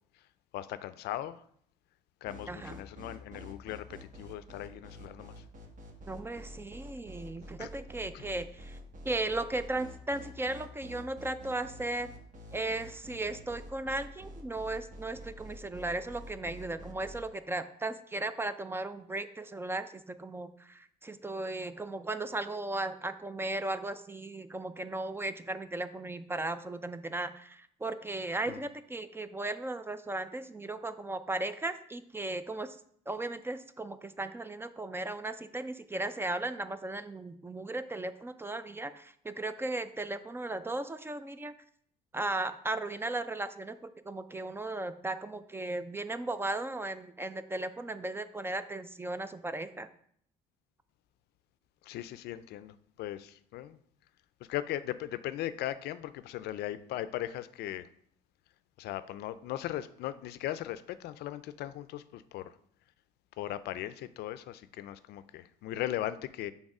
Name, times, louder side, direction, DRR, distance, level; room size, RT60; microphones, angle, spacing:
voice 1, 0.5-1.4 2.2-5.4 7.6-7.7 8.1-8.3 28.5-28.6 51.8-53.8 54.5-57.9 58.8-62.5 63.4-66.5, left 13 dB, 75° left, 14 dB, 0.4 m, -38 dB
sound 1, 2.2-17.2, equal, 50° right, 1.2 m, -47 dB
voice 2, 2.5-2.8 6.1-8.8 9.0-12.1 12.5-32.8 33.1-41.5 42.1-49.9, right 2 dB, 15° right, 11 dB, 0.3 m, -36 dB
6.4 x 3.5 x 4.8 m, 0.65 s
cardioid pair, 110°, 17 cm